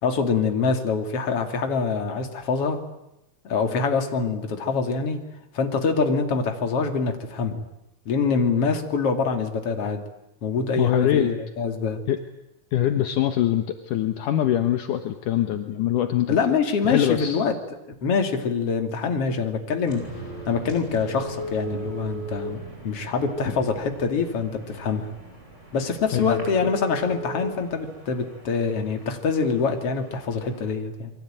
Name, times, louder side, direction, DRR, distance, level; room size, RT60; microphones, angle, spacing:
voice 1, 0.0-2.8 3.4-5.2 5.5-7.6 8.0-10.0 10.4-12.0 16.3-17.5 18.0-20.1 20.5-22.6 22.8-25.1 25.7-31.1, left 5 dB, 45° left, 5 dB, 3.4 m, -25 dB
voice 2, 10.8-11.3 12.1-12.2 12.7-16.4 16.8-17.4 26.1-26.4, left 11 dB, 70° left, 7 dB, 2.7 m, -23 dB
sound 1, 19.9-30.7, right 2 dB, 20° right, 8.3 m, -39 dB
28.0 x 23.5 x 9.1 m, 0.86 s
omnidirectional pair, 3.9 m